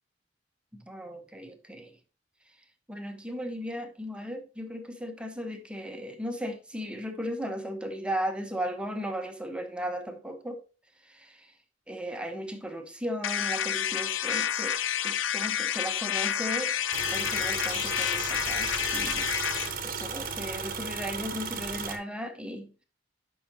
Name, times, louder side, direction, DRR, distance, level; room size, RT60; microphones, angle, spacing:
voice 1, 0.7-2.0 2.9-10.6 11.0-11.5 11.9-14.8 15.0-16.7 17.1-19.3 19.8-22.7, equal, 5° right, 1.0 m, -36 dB
sound 1, 13.2-19.7, left 10 dB, 85° left, 0.5 m, -29 dB
sound 2, 16.9-22.0, right 5 dB, 50° right, 1.1 m, -35 dB
9.3 x 5.8 x 2.8 m
head